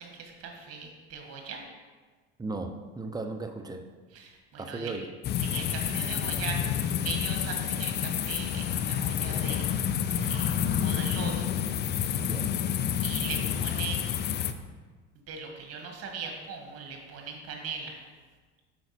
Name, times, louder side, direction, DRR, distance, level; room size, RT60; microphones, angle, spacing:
voice 1, 0.0-1.6 4.1-5.0 5.4-9.6 9.9-11.5 13.0-14.2 15.3-18.0, right 5 dB, 50° right, 2 dB, 1.6 m, -39 dB
voice 2, 2.4-3.8 4.6-5.1 12.2-12.6, right 3 dB, 10° right, 5 dB, 0.6 m, -36 dB
sound 1, 5.2-14.5, left 9 dB, 35° left, 0.4 m, -29 dB
5.7 x 5.1 x 4.2 m, 1.4 s
supercardioid pair, 85°, 32 cm